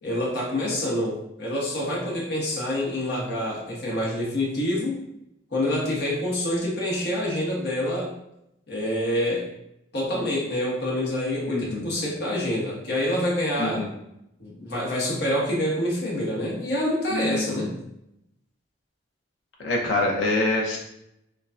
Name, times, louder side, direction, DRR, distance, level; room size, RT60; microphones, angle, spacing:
voice 1, 0.0-5.0 5.5-8.1 8.7-9.5 9.9-13.9 14.4-17.8, left 1 dB, 55° left, -4 dB, 1.0 m, -27 dB
voice 2, 11.5-11.9 13.6-13.9 17.1-17.8 19.6-20.8, left 2 dB, 80° left, -1 dB, 0.9 m, -26 dB
4.7 x 2.2 x 2.5 m, 0.81 s
head